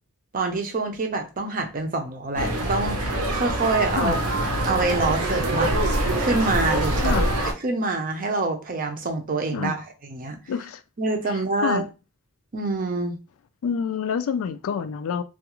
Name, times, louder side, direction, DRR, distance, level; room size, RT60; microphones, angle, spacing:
voice 1, 0.3-4.2 4.6-5.7 6.2-7.2 7.6-9.8 10.0-10.4 11.0-11.8 12.5-13.1, right 3 dB, 40° right, 0.5 m, -26 dB
sound 1, 2.4-7.5, right 1 dB, 85° right, 0.7 m, -24 dB
voice 2, 10.5-10.8 11.3-11.9 13.6-15.2, left 6 dB, 65° left, 0.3 m, -27 dB
2.3 x 2.3 x 2.9 m
head